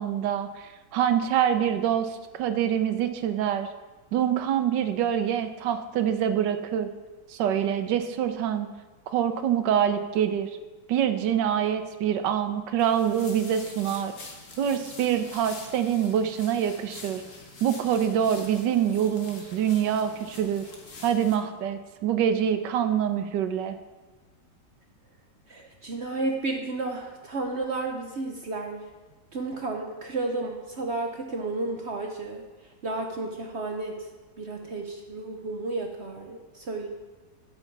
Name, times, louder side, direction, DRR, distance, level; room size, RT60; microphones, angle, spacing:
voice 1, 0.0-3.7 4.1-6.9 7.3-8.7 9.1-10.5 10.9-14.1 14.6-17.2 17.6-20.6 21.0-23.8, right 9 dB, 85° right, 9 dB, 1.4 m, -25 dB
sound 1, 12.8-21.4, left 3 dB, 50° left, 1.6 m, -45 dB
voice 2, 25.5-28.8 29.3-34.1 34.4-36.9, right 2 dB, 50° right, 2 dB, 0.8 m, -32 dB
12.0 x 6.9 x 4.6 m, 1.3 s
omnidirectional pair, 1.9 m